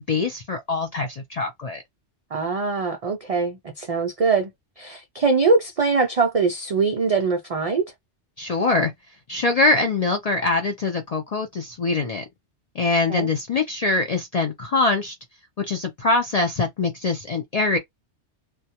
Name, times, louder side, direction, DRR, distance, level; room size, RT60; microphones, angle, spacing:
voice 1, 0.0-1.8 8.4-8.9 9.3-12.2 12.8-15.2 15.6-17.8, left 3 dB, 55° left, 0.4 m, -23 dB
voice 2, 2.3-4.5 4.8-7.9 13.1-13.3, right 4 dB, 65° right, 0.3 m, -22 dB
2.2 x 2.2 x 2.7 m
omnidirectional pair, 1.2 m